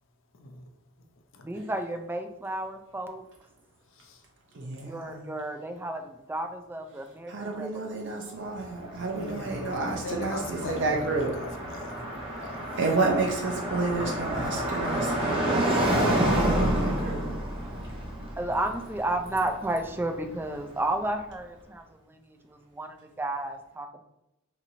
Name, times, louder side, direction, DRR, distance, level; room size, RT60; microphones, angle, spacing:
voice 1, 0.4-0.7 1.3-1.6 3.9-4.2 9.1-12.0 12.4-12.8, left 3 dB, 65° left, 4 dB, 0.6 m, -41 dB
voice 2, 1.4-3.2 4.8-8.5 18.4-24.0, right 1 dB, 10° right, 5 dB, 0.3 m, -33 dB
voice 3, 4.5-5.3 7.3-11.3 12.3-12.4 12.8-17.3, right 3 dB, 60° right, 0 dB, 0.6 m, -30 dB
Car passing by, 8.6-20.6, right 1 dB, 25° right, 0.8 m, -29 dB
2.9 x 2.6 x 4.1 m, 0.89 s
head